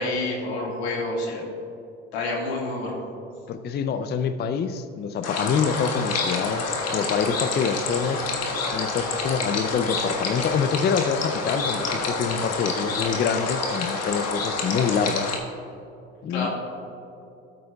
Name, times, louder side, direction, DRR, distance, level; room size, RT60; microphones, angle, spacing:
voice 1, 0.0-1.4 2.1-3.0 16.3-16.5, left 2 dB, 90° left, -2 dB, 1.9 m, -28 dB
voice 2, 3.5-6.7 6.9-8.2 8.7-15.3 16.2-16.5, left 6 dB, 35° left, 10 dB, 0.5 m, -26 dB
sound 1, 5.2-15.4, left 3 dB, 55° left, 1.5 m, -28 dB
13.5 x 7.6 x 2.3 m, 2.7 s
supercardioid pair, 75°, 31 cm